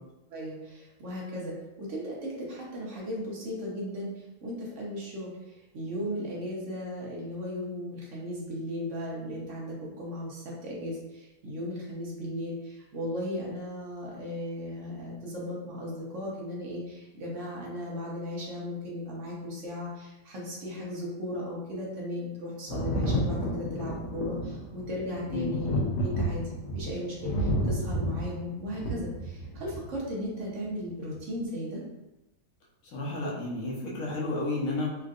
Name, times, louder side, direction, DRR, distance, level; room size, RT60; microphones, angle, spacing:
voice 1, 0.3-26.4 26.7-31.8, equal, 55° right, -4 dB, 1.0 m, -36 dB
Thunder, 22.7-30.0 31.2-31.3, equal, 80° left, 1.1 m, -31 dB
voice 2, 32.8-35.0, left 2 dB, 60° left, -4 dB, 1.1 m, -31 dB
3.6 x 2.5 x 2.4 m, 0.96 s
omnidirectional pair, 1.8 m